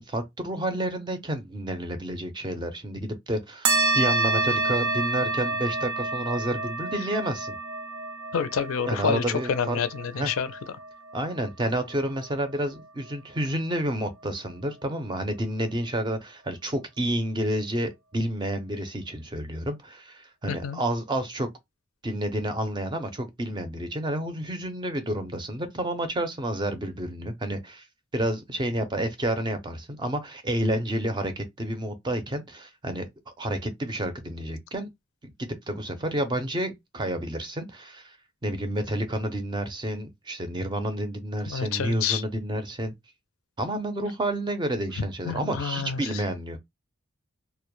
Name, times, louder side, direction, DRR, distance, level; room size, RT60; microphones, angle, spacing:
voice 1, 0.0-7.6 8.9-9.8 10.2-10.3 11.1-21.5 22.0-27.9 28.1-33.1 33.4-34.9 35.2-38.2 38.4-42.9 43.6-46.6, right 1 dB, 20° right, 0.4 m, -30 dB
sound 1, 3.7-12.6, right 3 dB, 85° right, 0.6 m, -29 dB
voice 2, 8.3-10.5 20.5-20.8 41.5-42.2 45.2-46.2, left 7 dB, 85° left, 0.4 m, -28 dB
2.1 x 2.1 x 2.9 m
head